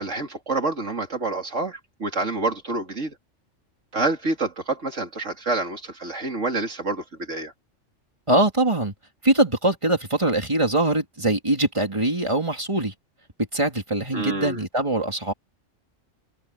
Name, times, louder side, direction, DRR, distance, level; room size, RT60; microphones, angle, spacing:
voice 1, 0.0-3.1 3.9-7.5 14.1-14.6, right 3 dB, 70° right, 3.4 m, -27 dB
voice 2, 8.3-8.9 9.2-12.9 13.5-15.3, right 2 dB, 25° right, 3.0 m, -22 dB
omnidirectional pair, 1.3 m